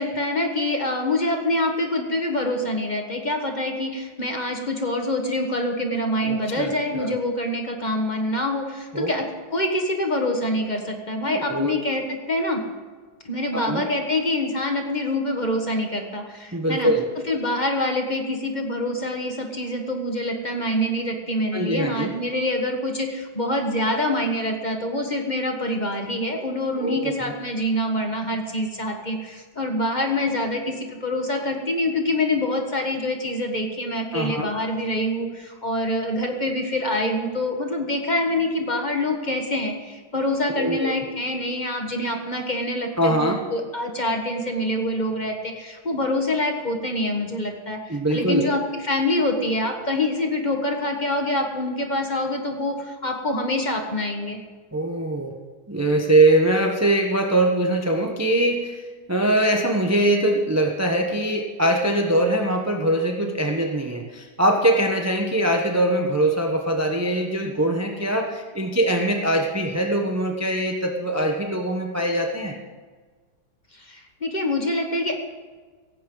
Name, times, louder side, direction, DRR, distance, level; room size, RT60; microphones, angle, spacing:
voice 1, 0.0-12.6 13.2-16.9 17.3-54.4 73.7-75.2, left 1 dB, 25° left, 3 dB, 1.4 m, -25 dB
voice 2, 6.2-7.2 8.9-9.1 11.3-11.8 13.5-13.9 16.5-17.1 21.5-22.1 26.8-27.3 34.1-34.5 40.5-40.9 43.0-43.4 47.9-48.5 54.7-55.3 55.7-72.5, right 1 dB, 15° right, 2 dB, 0.5 m, -22 dB
17.0 x 15.0 x 3.9 m, 1.4 s
omnidirectional pair, 2.2 m